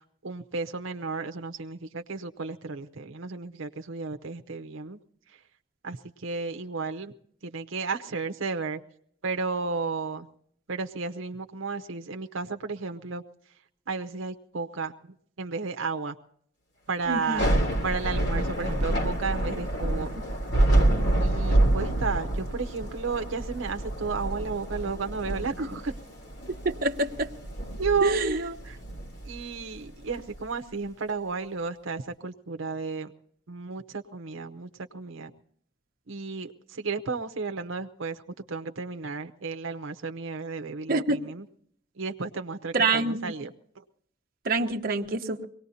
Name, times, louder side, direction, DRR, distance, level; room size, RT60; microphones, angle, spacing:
voice 1, 0.2-5.0 5.8-6.0 6.2-7.1 7.4-8.8 9.2-10.3 10.7-13.2 13.9-14.9 15.4-16.1 16.9-17.5 17.8-20.1 21.2-25.9 27.8-28.8 29.3-33.1 33.5-35.3 36.1-36.5 36.8-38.2 38.5-41.4 42.0-43.5, right 4 dB, 85° right, 0.8 m, -33 dB
voice 2, 17.1-17.5 25.6-25.7 26.6-27.3 28.0-28.4 40.9-41.2 42.7-43.2 44.4-45.4, right 3 dB, 50° right, 1.0 m, -26 dB
Thunder / Rain, 17.2-30.4, right 1 dB, 60° left, 2.9 m, -27 dB
23.5 x 18.5 x 2.7 m
head